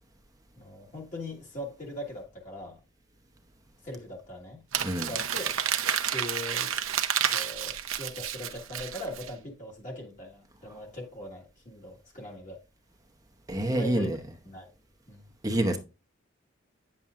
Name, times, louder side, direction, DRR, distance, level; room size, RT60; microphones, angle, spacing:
voice 1, 0.5-2.8 3.8-4.6 5.0-5.5 6.1-6.7 7.3-12.6 13.7-14.1 14.4-14.7 15.1-15.3, left 1 dB, 35° left, 1.7 m, -40 dB
Crumpling crinkling, 4.7-9.3, right 9 dB, 85° right, 0.8 m, -30 dB
voice 2, 13.5-14.2 15.4-15.8, right 1 dB, 15° right, 0.8 m, -27 dB
9.6 x 7.2 x 2.5 m
head